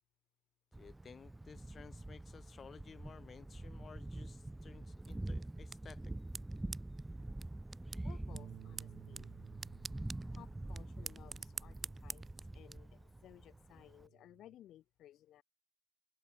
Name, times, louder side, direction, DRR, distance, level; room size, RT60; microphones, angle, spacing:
Thunder, 0.7-14.1, right 2 dB, 10° right, 0.4 m, -46 dB
voice 1, 0.8-6.0, left 6 dB, 45° left, 4.2 m, -56 dB
sound 1, 5.0-12.8, right 5 dB, 35° right, 0.8 m, -50 dB
voice 2, 8.0-9.3 10.3-12.3 12.5-15.4, left 12 dB, 80° left, 0.9 m, -59 dB
Bass guitar, 8.3-12.8 13.2-14.6, right 10 dB, 70° right, 3.6 m, -57 dB
cardioid pair, 90°, 0 cm